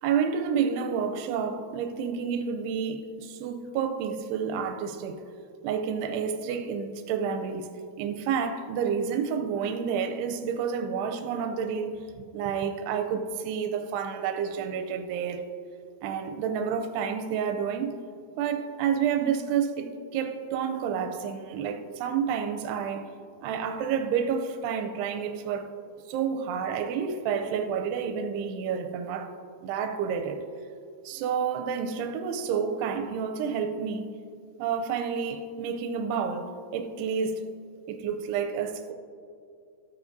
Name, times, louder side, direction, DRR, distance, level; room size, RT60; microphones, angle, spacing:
voice 1, 0.0-5.2 5.6-7.7 8.0-12.0 12.3-15.5 16.0-18.0 18.4-23.0 23.4-25.7 26.1-29.4 29.6-30.4 31.1-34.1 34.6-37.4 37.9-38.9, right 7 dB, 85° right, 2.7 m, -29 dB
14.5 x 8.6 x 2.6 m
omnidirectional pair, 4.7 m